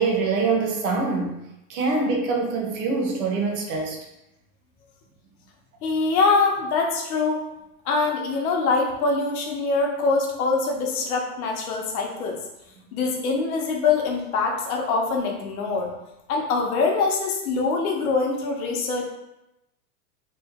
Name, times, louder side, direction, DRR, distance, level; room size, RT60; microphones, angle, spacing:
voice 1, 0.0-1.4 1.7-4.0, right 4 dB, 60° right, 1 dB, 1.1 m, -24 dB
voice 2, 5.8-7.4 7.8-12.4 12.9-15.9 16.3-19.0, left 4 dB, 60° left, 1 dB, 1.0 m, -24 dB
3.1 x 3.1 x 3.5 m, 0.89 s
supercardioid pair, 145°, 48 cm